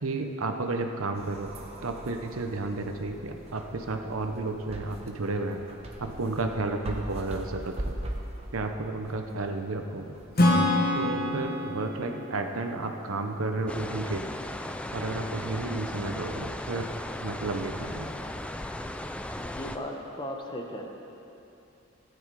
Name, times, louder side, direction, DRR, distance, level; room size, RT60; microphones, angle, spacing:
voice 1, 0.0-1.5 1.8-5.6 6.0-7.9 8.5-10.1 10.9-14.2 14.9-16.9 17.2-18.1, right 2 dB, 75° right, 5 dB, 0.9 m, -32 dB
sound 1, 1.1-11.9, right 1 dB, 30° right, 1.1 m, -42 dB
Acoustic guitar / Strum, 10.4-13.9, left 1 dB, 45° left, 1.2 m, -27 dB
sound 2, 13.7-19.8, left 1 dB, 5° left, 0.3 m, -36 dB
voice 2, 19.3-20.9, left 1 dB, 20° left, 1 dB, 1.0 m, -37 dB
15.5 x 9.7 x 4.8 m, 2.9 s
head